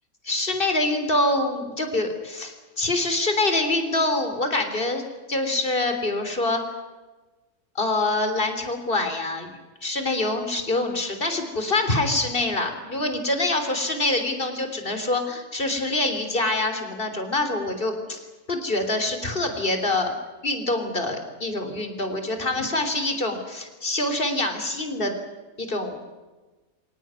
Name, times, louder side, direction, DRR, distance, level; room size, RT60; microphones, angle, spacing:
voice 1, 0.3-5.0 5.3-6.6 7.8-9.5 9.8-20.1 20.4-25.1 25.6-26.0, left 2 dB, 35° left, 6 dB, 3.8 m, -25 dB
24.5 x 18.5 x 9.6 m, 1.2 s
omnidirectional pair, 1.6 m